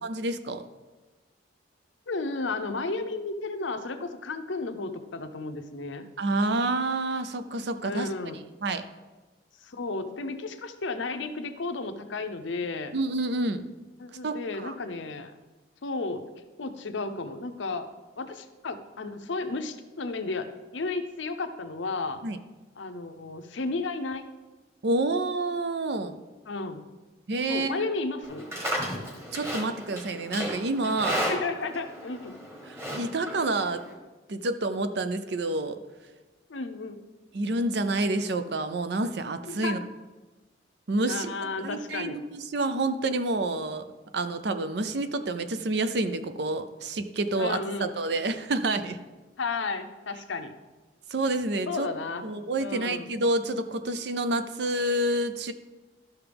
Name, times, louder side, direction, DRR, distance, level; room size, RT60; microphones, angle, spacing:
voice 1, 0.0-0.6 6.2-8.1 8.6-8.9 12.9-13.6 14.2-14.7 22.2-22.4 24.8-26.2 27.3-27.9 29.3-31.3 32.7-33.8 34.3-35.8 37.3-39.8 40.9-43.9 44.1-49.0 51.1-51.9 52.2-55.5, right 2 dB, 60° right, 10 dB, 0.5 m, -28 dB
voice 2, 2.1-6.0 7.8-8.4 9.6-12.9 14.0-15.3 15.8-16.3 16.6-17.9 18.2-22.2 22.8-24.2 26.5-26.8 27.5-28.5 31.3-32.4 36.5-37.0 39.4-39.8 41.1-42.2 47.3-47.9 49.4-50.5 51.7-52.3 52.6-53.1, left 3 dB, 80° left, 8 dB, 0.7 m, -33 dB
Livestock farm animals working animals, 28.2-33.9, equal, 15° right, 1.3 m, -34 dB
12.5 x 5.8 x 3.5 m, 1.2 s
head